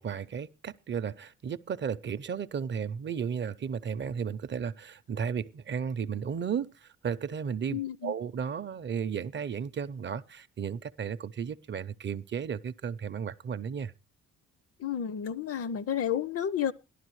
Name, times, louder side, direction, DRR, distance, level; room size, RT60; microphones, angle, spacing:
voice 1, 0.0-13.9, right 7 dB, 40° right, 0.5 m, -34 dB
voice 2, 7.7-8.1 14.8-16.7, left 9 dB, 50° left, 0.6 m, -31 dB
17.0 x 12.0 x 3.1 m
cardioid pair, 90°, 30 cm